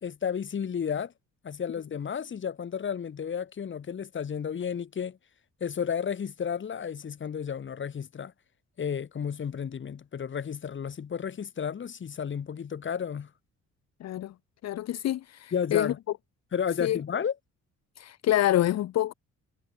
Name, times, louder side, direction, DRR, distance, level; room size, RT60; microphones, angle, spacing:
voice 1, 0.0-1.1 1.4-5.2 5.6-8.3 8.8-13.3 15.5-16.0 16.5-17.3, left 7 dB, 40° left, 1.4 m, -32 dB
voice 2, 14.0-14.3 14.6-15.9 16.8-17.0 18.0-19.1, left 13 dB, 60° left, 0.7 m, -27 dB
cardioid pair, 90°, 30 cm